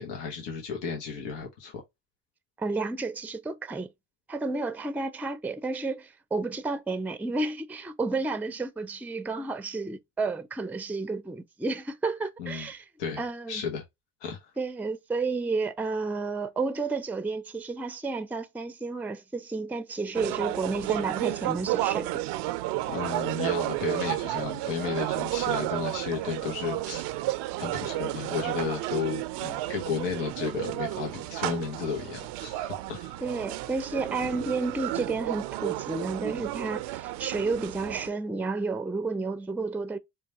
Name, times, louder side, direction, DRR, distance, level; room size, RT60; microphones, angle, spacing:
voice 1, 0.0-1.7 12.4-12.6 13.0-13.2 13.5-13.8 14.2-14.4 22.9-27.1 27.6-33.2, left 6 dB, 85° left, 1.0 m, -33 dB
voice 2, 2.6-3.9 4.3-12.9 13.2-13.6 14.6-22.2 33.2-40.0, right 3 dB, 5° right, 0.4 m, -31 dB
sound 1, 20.1-38.1, right 16 dB, 80° right, 0.5 m, -32 dB
4.6 x 2.2 x 2.9 m
supercardioid pair, 65°, 40 cm